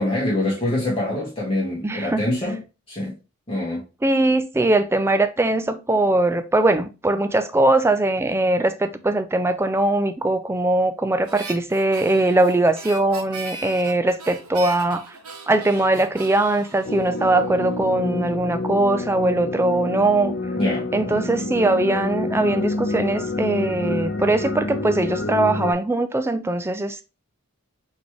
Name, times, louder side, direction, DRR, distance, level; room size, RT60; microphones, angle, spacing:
voice 1, 0.0-2.6 2.9-3.1 3.5-3.8 20.6-21.2, left 1 dB, 25° left, 1.3 m, -25 dB
voice 2, 1.8-2.2 4.0-15.2 15.5-20.4 20.9-27.0, right 2 dB, 10° right, 0.4 m, -21 dB
Harmonica, 11.2-17.7, right 3 dB, 90° right, 1.0 m, -39 dB
sound 1, 16.9-25.7, left 2 dB, 45° left, 0.6 m, -27 dB
4.0 x 3.5 x 3.1 m
head